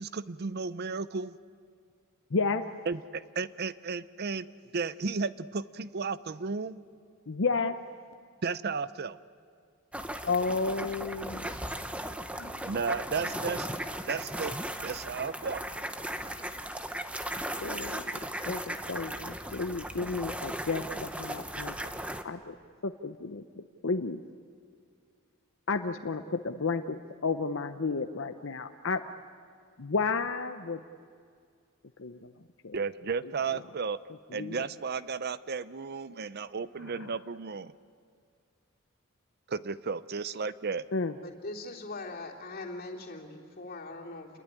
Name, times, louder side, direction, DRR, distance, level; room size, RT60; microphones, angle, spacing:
voice 1, 0.0-1.4 2.9-4.5 4.7-6.8 8.4-9.2 12.7-13.7 14.1-14.5 14.8-15.6 32.7-34.0 34.3-37.7 39.5-40.9, right 5 dB, 50° right, 16 dB, 0.6 m, -33 dB
voice 2, 2.3-2.6 7.3-7.8 10.2-11.5 12.4-12.7 17.6-18.0 18.4-21.9 22.2-22.5 22.8-24.2 25.7-29.0 29.8-30.8 32.0-32.3 32.6-32.8 33.2-33.3 34.3-34.6 36.9-37.1 40.9-41.1, left 4 dB, 65° left, 7 dB, 0.8 m, -32 dB
sound 1, 9.9-22.2, right 1 dB, 5° right, 1.0 m, -37 dB
voice 3, 41.2-44.3, left 2 dB, 45° left, 0 dB, 3.2 m, -41 dB
28.5 x 21.0 x 9.8 m, 2.2 s
head